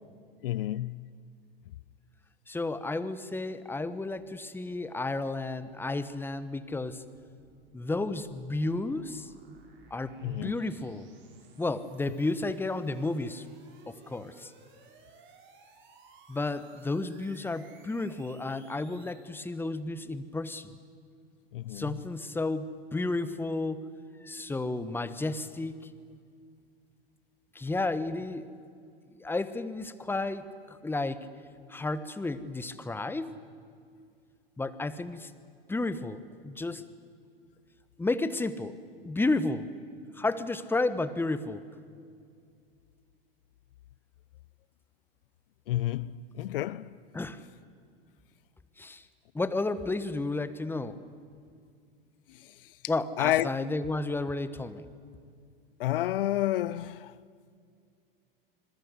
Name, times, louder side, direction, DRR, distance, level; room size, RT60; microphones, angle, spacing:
voice 1, 0.4-1.1 10.2-10.6 21.5-22.0 45.7-46.9 52.3-52.5 53.2-53.5 55.8-57.1, left 14 dB, 65° left, 0.7 m, -30 dB
voice 2, 2.5-7.0 7.7-9.3 9.9-11.1 11.6-13.4 13.9-14.5 16.3-20.7 21.7-23.9 24.2-25.9 27.5-28.5 29.1-31.3 31.7-33.4 34.6-35.3 35.7-36.9 38.0-38.8 39.0-39.7 40.1-41.6 47.1-47.4 48.8-49.0 49.3-51.0 52.9-54.9, left 2 dB, 5° left, 1.2 m, -32 dB
sound 1, 6.9-19.3, right 4 dB, 40° right, 5.7 m, -58 dB
26.5 x 21.0 x 8.2 m
hypercardioid pair, 95°, 29 cm